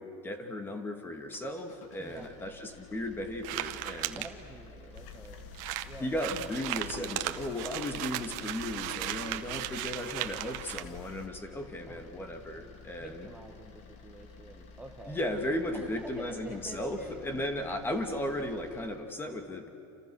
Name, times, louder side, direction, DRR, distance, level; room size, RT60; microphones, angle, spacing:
voice 1, 0.0-4.2 6.0-13.3 15.1-19.7, left 1 dB, 15° left, 5 dB, 2.4 m, -36 dB
sound 1, 1.2-19.1, left 4 dB, 45° left, 2.9 m, -52 dB
voice 2, 2.0-2.4 3.9-5.5 5.8-6.1 11.9-15.2 15.7-17.7, right 2 dB, 5° right, 1 dB, 1.7 m, -48 dB
Paper Crunching, 3.4-4.3 5.0-5.1 5.3-5.4 5.5-10.8, right 16 dB, 55° right, 1.4 m, -36 dB
sound 2, 4.9-11.3, left 7 dB, 65° left, 2.1 m, -49 dB
29.0 x 28.5 x 6.4 m, 2.8 s
supercardioid pair, 150°, 16 cm